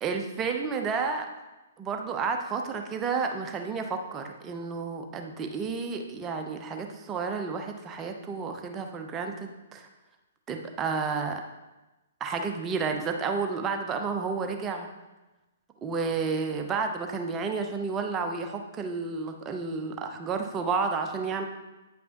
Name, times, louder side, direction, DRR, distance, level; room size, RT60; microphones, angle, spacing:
voice 1, 0.0-1.3 1.8-9.9 10.5-11.4 12.2-14.9 15.8-21.4, right 5 dB, 20° right, 4 dB, 0.8 m, -31 dB
9.5 x 5.2 x 3.0 m, 1.1 s
figure-of-eight pair, 125°, 0 cm